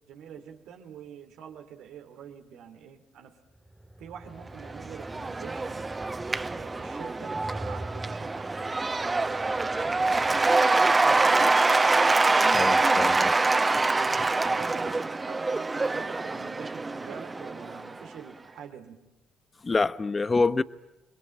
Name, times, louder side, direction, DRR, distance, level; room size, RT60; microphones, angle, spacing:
voice 1, 0.0-3.4 4.0-5.9 6.5-10.5 11.0-11.5 14.4-19.0, right 8 dB, 70° right, 2.9 m, -46 dB
sound 1, 3.5-10.9, right 1 dB, 5° right, 2.1 m, -43 dB
Cheering / Applause / Crowd, 4.6-18.0, right 3 dB, 25° right, 1.0 m, -25 dB
voice 2, 12.5-13.3 19.6-20.6, left 3 dB, 30° left, 0.9 m, -26 dB
29.0 x 22.5 x 8.9 m
hypercardioid pair, 50°, 0 cm